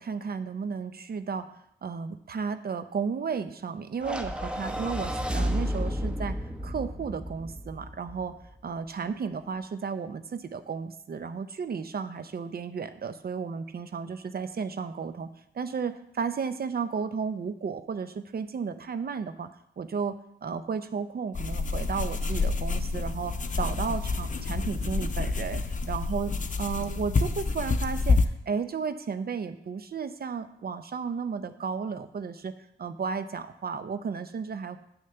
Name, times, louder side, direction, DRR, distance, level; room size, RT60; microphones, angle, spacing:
voice 1, 0.0-1.5 1.8-6.4 6.6-8.4 8.6-15.3 15.5-19.5 19.8-34.8, right 5 dB, 50° right, 11 dB, 0.7 m, -33 dB
sound 1, 4.0-8.4, equal, 5° right, 1.0 m, -32 dB
sound 2, 21.3-28.3, left 3 dB, 40° left, 0.8 m, -28 dB
7.3 x 6.4 x 6.8 m, 0.76 s
cardioid pair, 65°, 20 cm